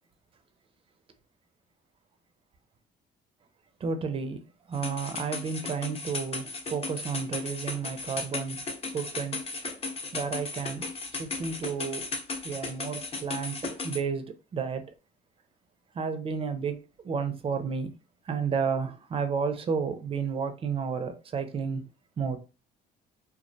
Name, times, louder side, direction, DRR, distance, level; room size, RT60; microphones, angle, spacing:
voice 1, 3.8-4.4 4.7-8.6 8.9-9.4 10.1-10.8 11.2-12.1 12.4-14.8 15.9-17.9 18.3-21.8 22.2-22.4, right 5 dB, 35° right, 0.5 m, -31 dB
sound 1, 4.7-14.0, left 3 dB, 35° left, 0.7 m, -36 dB
2.3 x 2.1 x 2.6 m
cardioid pair, 110°, 17 cm